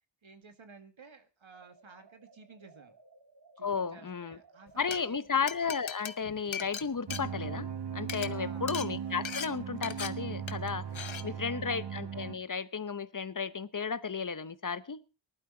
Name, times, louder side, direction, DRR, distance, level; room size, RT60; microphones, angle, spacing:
voice 1, 0.2-3.0 3.6-5.3 8.2-8.8 10.9-11.7, right 4 dB, 85° right, 2.0 m, -54 dB
sound 1, 1.5-6.4, right 3 dB, 45° right, 2.2 m, -60 dB
voice 2, 3.6-4.4 4.8-7.7 7.9-10.8 11.2-15.0, left 5 dB, 45° left, 0.9 m, -33 dB
Glass, 4.7-5.0 5.5-7.8 8.0-8.3 8.7-8.9 9.3-9.5 9.8-10.1 10.5-10.7 11.0-11.2, left 7 dB, 80° left, 1.0 m, -38 dB
sound 2, 7.1-12.4, right 8 dB, 65° right, 0.8 m, -38 dB
19.0 x 12.0 x 3.9 m
wide cardioid pair, 65°, 46 cm